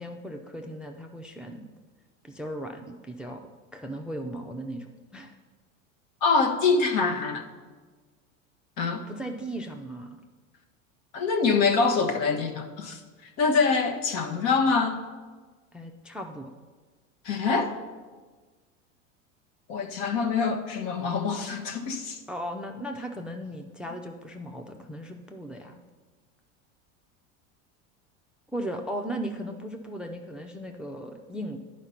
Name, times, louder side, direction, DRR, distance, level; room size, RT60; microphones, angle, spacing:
voice 1, 0.0-1.7 2.2-5.3 9.0-10.2 15.7-16.5 22.3-25.8 28.5-31.6, right 1 dB, ahead, 4 dB, 0.5 m, -37 dB
voice 2, 6.2-7.4 8.8-9.0 11.1-13.0 13.4-15.0 17.2-17.7 19.7-22.2, left 4 dB, 55° left, 4 dB, 1.4 m, -25 dB
10.5 x 5.1 x 5.8 m, 1.4 s
hypercardioid pair, 100°, 40 cm